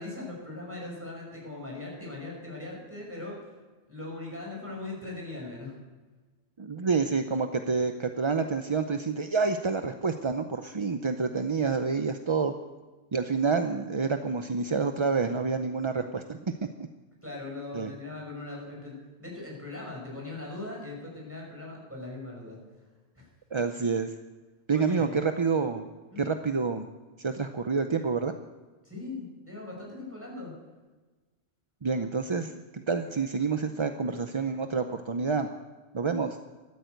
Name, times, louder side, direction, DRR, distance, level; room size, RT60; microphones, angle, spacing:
voice 1, 0.0-3.5 3.9-5.8 17.2-22.8 23.1-23.3 24.7-25.2 26.1-26.2 28.8-30.5, left 2 dB, 10° right, -2 dB, 6.0 m, -40 dB
voice 2, 6.6-12.5 13.1-16.5 17.7-17.9 23.5-24.1 24.7-25.8 26.2-26.9 27.2-28.3 31.8-35.5 35.9-36.4, right 4 dB, 35° right, 7 dB, 0.5 m, -28 dB
14.0 x 12.5 x 8.0 m, 1.3 s
omnidirectional pair, 1.3 m